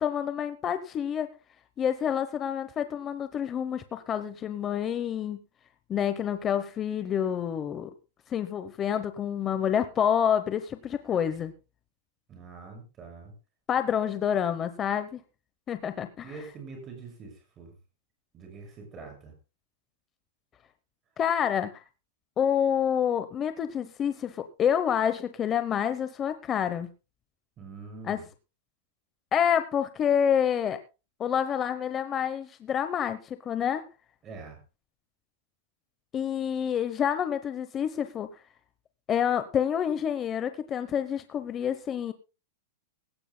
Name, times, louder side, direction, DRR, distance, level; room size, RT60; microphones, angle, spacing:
voice 1, 0.0-1.3 1.8-5.4 5.9-7.9 8.3-11.5 13.7-15.2 15.7-16.3 21.2-21.7 22.4-26.9 28.0-28.2 29.3-30.8 31.2-33.8 36.1-38.3 39.1-42.1, left 8 dB, 20° left, 10 dB, 0.8 m, -28 dB
voice 2, 12.3-13.3 16.2-17.7 18.3-19.3 27.6-28.2 34.2-34.6, right 4 dB, 20° right, 3 dB, 6.5 m, -44 dB
18.0 x 17.0 x 2.2 m, 0.31 s
supercardioid pair, 165°, 0 cm